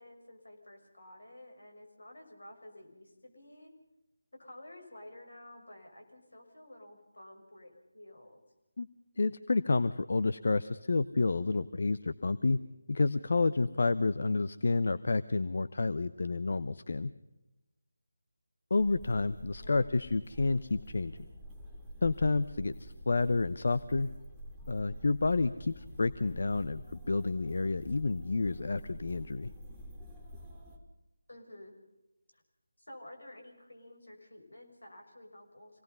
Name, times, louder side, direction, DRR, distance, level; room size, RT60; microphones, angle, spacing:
voice 1, 0.0-3.7 4.4-8.4 19.6-20.0 31.3-31.7 32.3-32.4 32.8-35.8, left 1 dB, 75° left, 4 dB, 6.5 m, -52 dB
voice 2, 9.2-12.6 12.9-17.1 18.7-21.2 22.0-24.1 24.7-29.5, left 3 dB, 55° left, 13 dB, 0.8 m, -30 dB
sound 1, 18.8-30.8, equal, 5° right, 2.8 m, -48 dB
27.0 x 18.5 x 5.5 m, 0.98 s
figure-of-eight pair, 160°, 0 cm